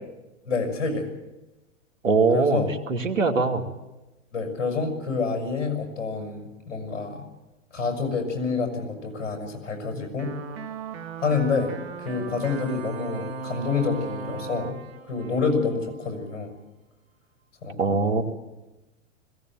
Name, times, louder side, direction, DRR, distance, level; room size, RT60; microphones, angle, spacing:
voice 1, 0.4-1.1 2.3-2.7 4.3-7.2 7.7-10.3 11.2-14.8 15.1-16.5 17.6-17.8, left 4 dB, 70° left, 5 dB, 6.3 m, -28 dB
voice 2, 2.0-3.6 17.8-18.2, right 4 dB, 90° right, 5 dB, 2.6 m, -22 dB
sound 1, 10.2-16.3, right 4 dB, 55° right, 2.5 m, -37 dB
21.0 x 17.5 x 9.1 m, 1.0 s
hypercardioid pair, 110°, 38 cm